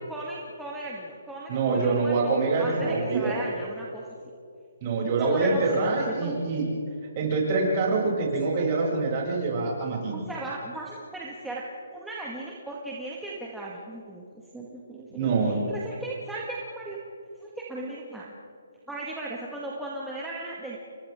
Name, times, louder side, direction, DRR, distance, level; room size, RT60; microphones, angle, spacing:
voice 1, 0.1-2.3 2.6-4.0 5.2-6.4 10.1-11.6 11.9-14.2 14.5-15.3 15.7-17.0 17.4-18.3 18.9-20.8, right 2 dB, 5° right, -5 dB, 2.0 m, -37 dB
voice 2, 1.5-3.3 4.8-6.7 7.2-10.2 15.1-15.6, right 3 dB, 30° right, -3 dB, 7.7 m, -25 dB
30.0 x 25.5 x 3.8 m, 2.4 s
hypercardioid pair, 165°, 0 cm